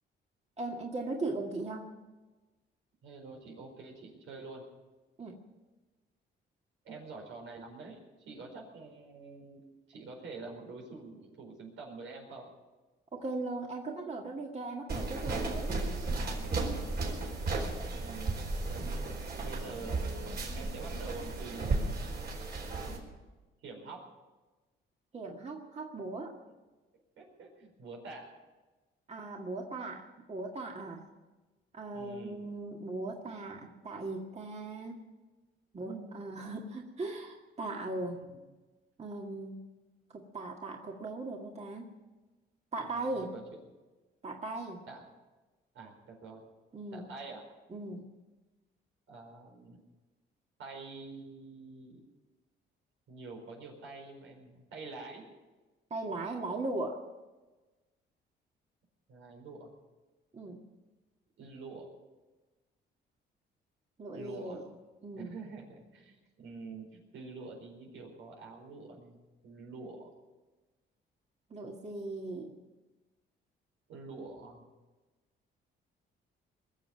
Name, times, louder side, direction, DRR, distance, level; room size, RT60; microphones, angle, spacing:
voice 1, 0.6-1.9 5.2-5.4 13.1-15.7 25.1-26.4 29.1-31.1 31.7-35.0 35.7-38.2 39.0-39.7 40.1-41.9 42.7-43.3 44.2-44.8 46.7-47.1 47.7-48.1 55.9-57.0 60.3-60.6 64.0-64.7 65.0-65.4 71.5-72.5, right 2 dB, 35° right, 0 dB, 1.9 m, -38 dB
voice 2, 3.0-4.6 6.8-9.6 9.9-12.5 16.1-18.4 19.4-20.0 20.5-22.0 23.6-24.0 26.5-26.6 27.2-28.3 31.9-32.4 35.8-36.3 38.2-38.4 42.8-43.4 44.9-45.0 45.7-46.4 46.9-47.4 49.1-49.8 50.6-52.0 53.1-55.3 59.1-59.7 61.4-61.9 64.1-64.6 65.1-69.2 69.4-70.1 73.9-74.7, right 3 dB, 85° right, 0 dB, 4.7 m, -47 dB
sound 1, 14.9-23.0, right 3 dB, 55° right, 4.7 m, -34 dB
21.0 x 7.4 x 9.4 m, 1.2 s
cardioid pair, 90°, 20 cm